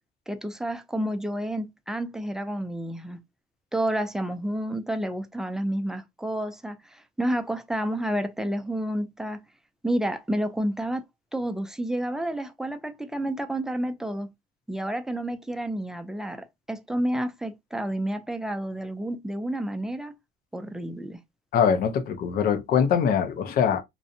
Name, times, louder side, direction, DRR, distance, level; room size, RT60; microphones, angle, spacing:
voice 1, 0.3-3.2 3.7-9.4 9.8-11.0 11.3-14.3 14.7-20.1 20.5-21.2, right 1 dB, 5° right, 0.4 m, -30 dB
voice 2, 21.5-23.8, left 7 dB, 60° left, 0.5 m, -23 dB
2.6 x 2.0 x 2.6 m
cardioid pair, 110°, 17 cm